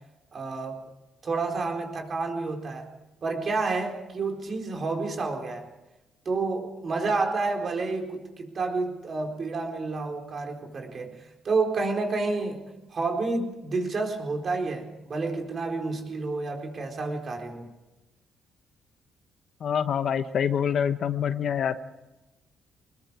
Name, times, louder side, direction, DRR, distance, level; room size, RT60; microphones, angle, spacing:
voice 1, 0.3-0.8 1.2-2.9 3.2-5.7 6.2-12.6 12.9-17.7, right 3 dB, 45° right, 2 dB, 4.4 m, -29 dB
voice 2, 19.6-21.7, left 8 dB, 60° left, 11 dB, 1.1 m, -26 dB
26.0 x 21.0 x 4.9 m, 1.0 s
cardioid pair, 90°, 0 cm